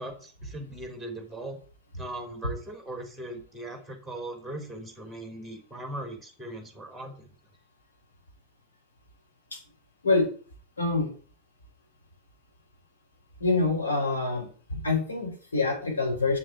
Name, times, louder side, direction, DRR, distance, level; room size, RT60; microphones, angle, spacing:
voice 1, 0.0-1.6 2.0-7.3, right 1 dB, 5° left, 4 dB, 3.5 m, -39 dB
voice 2, 10.8-11.1 13.4-14.5 14.7-16.4, left 3 dB, 75° left, -1 dB, 5.2 m, -26 dB
7.6 x 7.5 x 7.8 m, 0.41 s
figure-of-eight pair, 90°, 0 cm